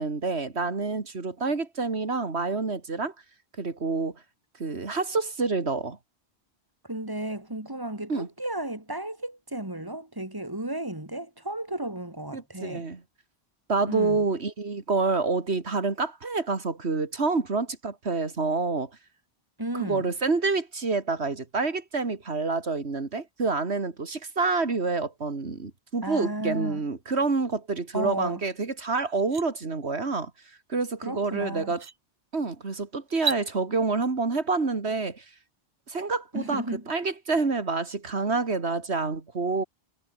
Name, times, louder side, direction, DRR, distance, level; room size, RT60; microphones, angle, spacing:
voice 1, 0.0-3.1 3.6-4.2 4.6-6.0 8.1-8.3 12.3-13.0 13.7-18.9 19.8-30.3 30.7-31.8 32.3-35.2 35.9-39.6, right 3 dB, 80° right, 2.7 m, -28 dB
voice 2, 6.8-12.9 13.9-14.2 19.6-20.1 26.0-26.8 27.9-28.4 31.0-31.7 36.3-36.8, right 1 dB, 20° right, 3.6 m, -33 dB
sound 1, 28.5-28.6 29.0-29.4 31.1-31.2 31.7-32.0 33.1-33.4, right 5 dB, 45° right, 1.1 m, -32 dB
omnidirectional pair, 1.1 m